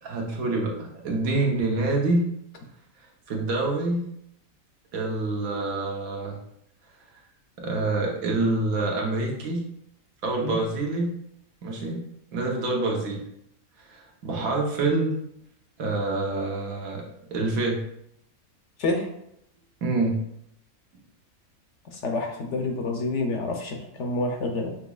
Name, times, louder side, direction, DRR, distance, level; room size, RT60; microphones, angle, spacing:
voice 1, 0.0-2.3 3.3-4.1 4.9-6.4 7.6-9.7 10.2-11.1 11.6-13.2 13.9-15.2 15.8-17.0 17.3-17.8 19.8-20.2, right 2 dB, 80° right, -1 dB, 1.3 m, -26 dB
voice 2, 21.8-24.7, left 2 dB, 65° left, 3 dB, 0.8 m, -28 dB
6.0 x 2.9 x 2.3 m, 0.75 s
omnidirectional pair, 1.5 m